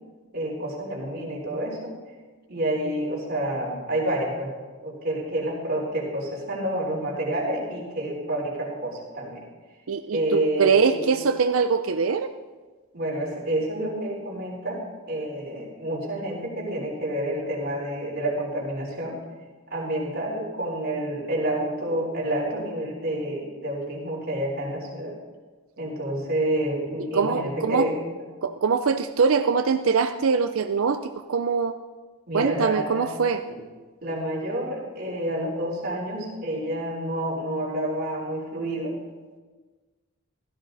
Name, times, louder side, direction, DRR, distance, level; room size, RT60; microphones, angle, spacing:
voice 1, 0.3-1.9 2.5-4.5 4.8-9.4 10.1-11.1 12.9-14.8 15.1-19.2 19.7-25.1 25.8-28.0 32.3-33.1 33.5-33.6 34.0-38.9, right 1 dB, 45° right, -3 dB, 3.9 m, -29 dB
voice 2, 9.9-12.3 27.1-27.9 28.4-31.7 32.3-33.4, right 5 dB, 70° right, 9 dB, 0.5 m, -23 dB
16.0 x 14.0 x 4.0 m, 1.4 s
head